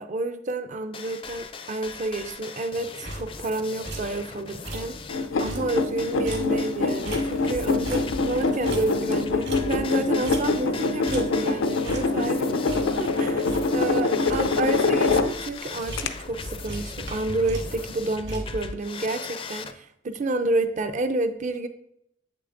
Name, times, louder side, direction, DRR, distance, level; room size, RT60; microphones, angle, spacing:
voice 1, 0.0-5.0 5.4-13.4 13.7-21.7, right 2 dB, 40° right, 9 dB, 0.4 m, -29 dB
sound 1, 0.9-19.7, left 4 dB, 30° left, 0.4 m, -39 dB
sound 2, 3.0-3.6 3.8-4.2 4.5-5.0 5.3-7.6 7.9-10.8 11.1-11.5 11.9-12.3 12.7-14.0 14.3-14.6 14.9-15.5 15.8-16.4 16.7-18.7, right 1 dB, 65° right, 1.5 m, -37 dB
sound 3, 5.1-15.6 16.0-16.1, left 3 dB, 90° left, 0.5 m, -25 dB
7.9 x 6.7 x 2.5 m, 0.76 s
head